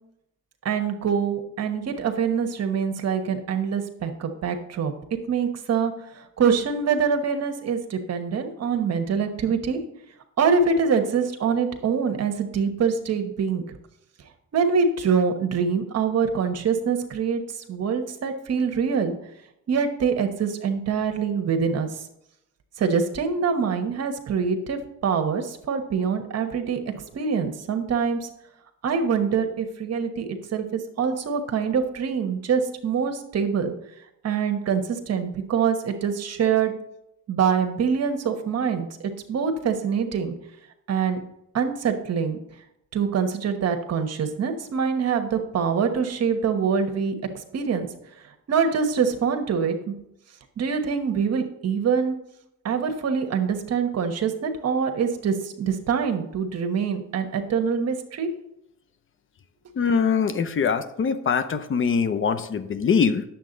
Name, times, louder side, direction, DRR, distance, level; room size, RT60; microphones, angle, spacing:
voice 1, 0.6-4.9 5.3-9.8 10.4-13.6 14.5-17.4 17.7-19.1 19.7-22.0 22.8-26.8 27.1-28.3 28.8-33.7 34.2-36.7 37.3-40.3 40.9-41.2 41.5-42.4 42.9-47.1 47.5-47.9 48.5-49.9 50.6-52.1 52.6-58.3, right 6 dB, 55° right, 6 dB, 1.2 m, -24 dB
voice 2, 59.8-63.2, left 6 dB, 40° left, 11 dB, 0.8 m, -23 dB
9.3 x 7.3 x 3.9 m, 0.81 s
cardioid pair, 90°, 30 cm